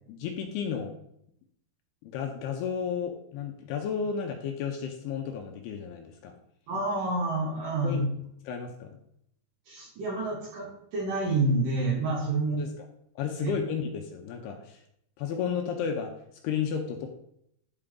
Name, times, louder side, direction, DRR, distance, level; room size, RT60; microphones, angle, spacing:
voice 1, 0.1-1.0 2.0-6.3 7.8-8.0 8.5-8.9 12.6-12.9 13.2-14.8 15.2-16.1 16.4-17.1, left 7 dB, 80° left, 2 dB, 2.5 m, -32 dB
voice 2, 6.7-8.0 9.7-12.7 13.4-13.5, right 2 dB, 60° right, -2 dB, 2.8 m, -28 dB
11.5 x 4.4 x 3.7 m, 0.74 s
omnidirectional pair, 5.1 m